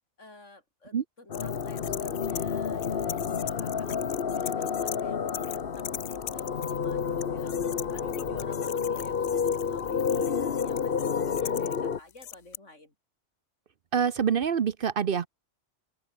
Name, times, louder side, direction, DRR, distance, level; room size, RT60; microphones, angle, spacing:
voice 1, 0.2-7.6 7.9-12.9, left 2 dB, 85° left, 5.4 m, -51 dB
sound 1, 1.3-5.0 5.3-12.6, left 11 dB, 65° left, 0.9 m, -41 dB
sound 2, 1.3-12.0, left 6 dB, 50° left, 1.2 m, -30 dB
voice 2, 13.9-15.3, right 7 dB, 55° right, 0.9 m, -26 dB
open air
omnidirectional pair, 1.2 m